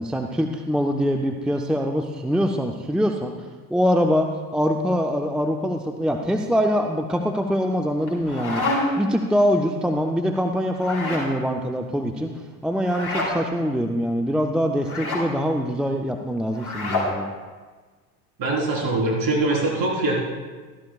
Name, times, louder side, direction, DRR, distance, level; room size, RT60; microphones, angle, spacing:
voice 1, 0.0-8.6 9.0-12.3 12.6-17.3, equal, ahead, 4 dB, 0.5 m, -24 dB
sound 1, 8.0-9.1 10.7-11.3 12.8-13.3 14.8-15.3 16.5-17.1, left 2 dB, 75° left, 4.2 m, -27 dB
voice 2, 18.4-20.2, right 2 dB, 50° right, -3 dB, 4.2 m, -22 dB
15.5 x 13.0 x 2.4 m, 1.4 s
hypercardioid pair, 75°, 46 cm